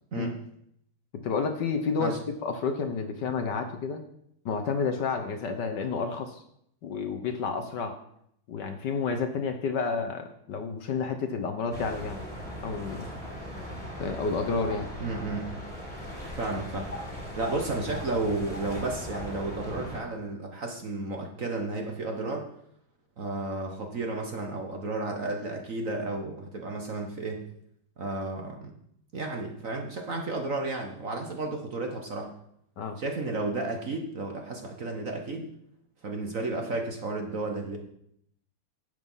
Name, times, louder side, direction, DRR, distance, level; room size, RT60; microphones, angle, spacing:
voice 1, 1.2-2.2 2.4-4.0 4.4-6.4 6.8-7.9 8.5-12.2 12.6-13.1 14.0-14.9 32.8-33.0, left 5 dB, 60° left, 6 dB, 1.4 m, -30 dB
sound 1, 11.7-20.0, equal, 15° right, 3.2 m, -38 dB
voice 2, 15.0-15.5 16.4-16.9 17.4-22.5 23.2-27.4 28.0-28.8 29.1-32.3 33.0-35.5 36.0-37.8, right 2 dB, 45° right, 3 dB, 1.3 m, -32 dB
10.5 x 8.0 x 5.5 m, 0.73 s
omnidirectional pair, 2.4 m